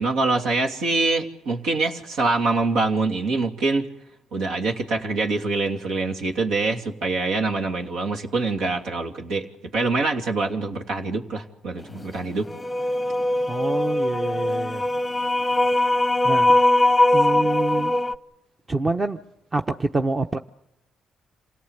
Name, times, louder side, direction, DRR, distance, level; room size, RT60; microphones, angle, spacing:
voice 1, 0.0-3.9 4.3-9.5 9.7-12.5, right 3 dB, 90° right, 1 dB, 2.8 m, -24 dB
sound 1, 12.5-18.1, left 1 dB, 15° left, 0.8 m, -21 dB
voice 2, 13.5-14.9 16.2-16.6 17.1-17.9 18.7-19.2 19.5-20.4, right 3 dB, 25° right, 6 dB, 0.9 m, -26 dB
27.5 x 18.0 x 8.2 m, 0.91 s
cardioid pair, 90°, 0 cm